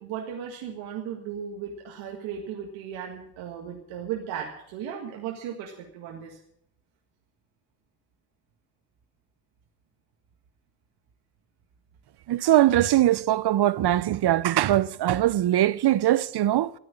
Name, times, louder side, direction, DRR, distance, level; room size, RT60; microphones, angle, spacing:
voice 1, 0.0-6.4, right 8 dB, 90° right, 1.9 m, -36 dB
voice 2, 12.3-16.7, right 13 dB, 60° right, 0.8 m, -21 dB
14.0 x 9.6 x 8.6 m
supercardioid pair, 55°, 46 cm